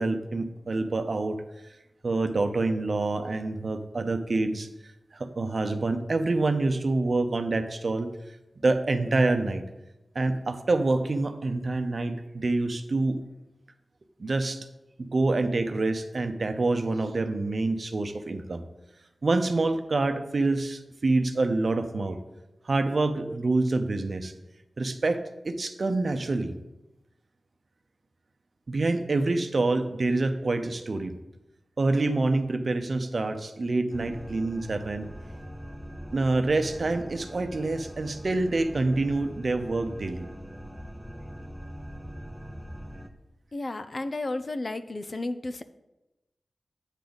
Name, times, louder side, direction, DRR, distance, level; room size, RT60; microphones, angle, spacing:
voice 1, 0.0-1.4 2.0-4.7 5.1-8.1 8.6-9.6 10.1-13.2 14.2-14.6 15.0-18.6 19.2-22.2 22.6-24.3 24.8-26.5 28.7-31.2 31.8-35.1 36.1-40.3, right 2 dB, 55° right, 8 dB, 0.7 m, -26 dB
sound 1, 33.9-43.1, equal, ahead, 0.8 m, -42 dB
voice 2, 43.5-45.6, left 2 dB, 45° left, 11 dB, 0.5 m, -32 dB
9.0 x 3.9 x 7.0 m, 0.97 s
wide cardioid pair, 70°, 0 cm